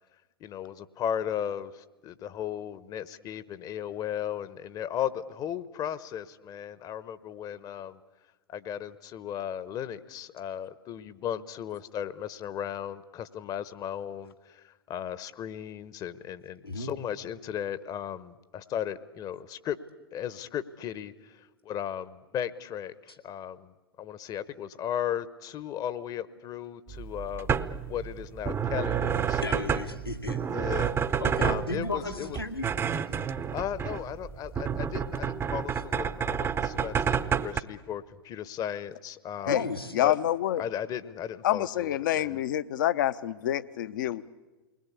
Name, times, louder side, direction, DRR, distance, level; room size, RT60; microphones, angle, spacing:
voice 1, 0.4-8.0 8.5-19.8 20.1-27.6 27.9-29.4 30.5-32.4 33.5-39.7 40.0-40.2 40.6-42.4, left 9 dB, 30° left, 16 dB, 1.0 m, -36 dB
sound 1, 26.9-37.6, right 7 dB, 20° right, 0.8 m, -30 dB
voice 2, 29.4-30.4 31.2-32.7 39.5-39.9, left 3 dB, 90° left, 1 dB, 2.4 m, -34 dB
voice 3, 39.9-40.6 41.4-44.3, left 12 dB, 55° left, 15 dB, 0.9 m, -27 dB
28.5 x 20.5 x 8.4 m, 1.2 s
figure-of-eight pair, 90°, 12 cm